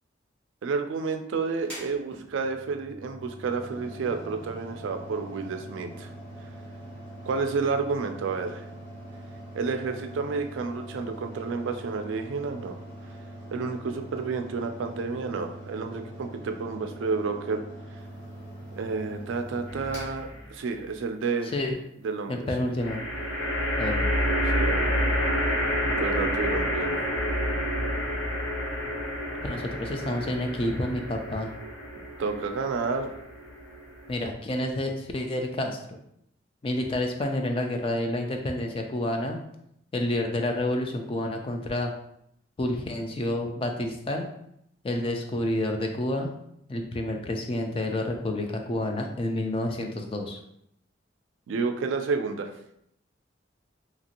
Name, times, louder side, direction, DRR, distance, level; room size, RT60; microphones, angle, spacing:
voice 1, 0.6-6.1 7.3-8.6 9.5-12.8 13.5-17.6 18.8-21.5 22.0-22.5 24.4-25.0 26.0-26.9 32.2-33.2 51.5-52.5, right 4 dB, 80° right, 6 dB, 0.3 m, -30 dB
Mechanical fan, 1.6-21.0, right 1 dB, 5° left, 1.0 m, -43 dB
sound 1, 19.7-20.3 22.8-34.2, equal, 85° left, 0.7 m, -29 dB
voice 2, 22.3-23.0 23.8-24.1 29.4-31.5 34.1-36.0 36.6-39.4 39.9-41.9 42.6-44.3 44.8-46.3 46.7-50.4, left 1 dB, 30° left, 3 dB, 0.3 m, -29 dB
2.9 x 2.5 x 2.8 m, 0.75 s
head